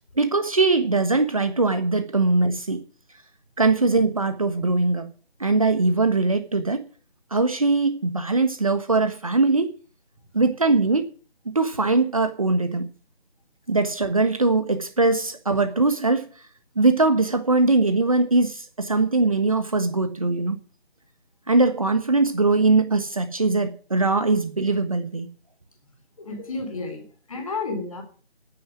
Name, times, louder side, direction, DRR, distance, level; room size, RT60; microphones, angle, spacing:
voice 1, 0.2-2.8 3.6-5.1 5.4-6.8 7.3-9.7 10.3-11.1 11.5-12.9 13.7-16.3 16.8-20.6 21.5-25.3, right 3 dB, 30° right, 1.3 m, -21 dB
voice 2, 26.2-28.0, left 3 dB, 30° left, 3.4 m, -32 dB
9.9 x 9.4 x 9.8 m
figure-of-eight pair, 165°, 33 cm